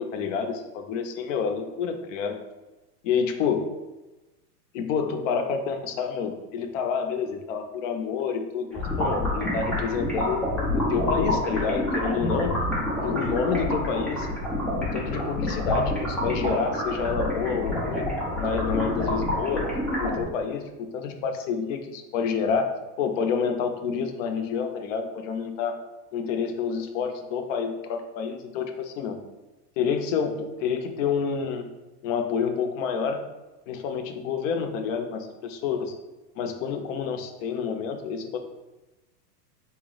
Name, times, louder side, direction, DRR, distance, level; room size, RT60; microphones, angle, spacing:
voice 1, 0.0-2.4 3.0-3.6 4.7-10.5 10.7-12.6 13.0-14.3 14.8-18.1 18.4-19.6 20.0-22.7 23.0-25.8 26.1-29.2 29.8-31.6 32.0-33.2 33.7-35.9 36.4-38.4, left 6 dB, 55° left, 6 dB, 0.6 m, -28 dB
sound 1, 8.7-20.2, left 1 dB, 5° left, 0.3 m, -27 dB
4.0 x 2.0 x 3.9 m, 1.1 s
hypercardioid pair, 120°, 48 cm